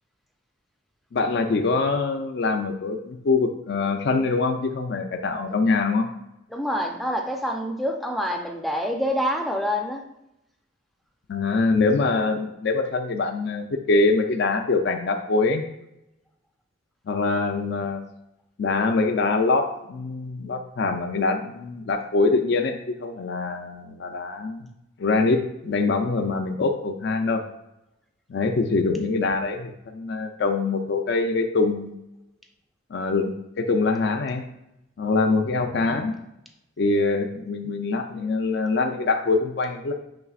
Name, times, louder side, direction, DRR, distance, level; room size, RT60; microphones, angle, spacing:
voice 1, 1.1-6.1 11.3-15.6 17.1-18.0 18.6-24.7 25.0-27.4 28.3-31.9 32.9-34.5 35.0-36.1 36.8-39.9, left 3 dB, 60° left, 4 dB, 0.4 m, -24 dB
voice 2, 6.5-10.0, equal, ahead, 2 dB, 0.4 m, -26 dB
6.9 x 3.3 x 2.4 m, 0.85 s
head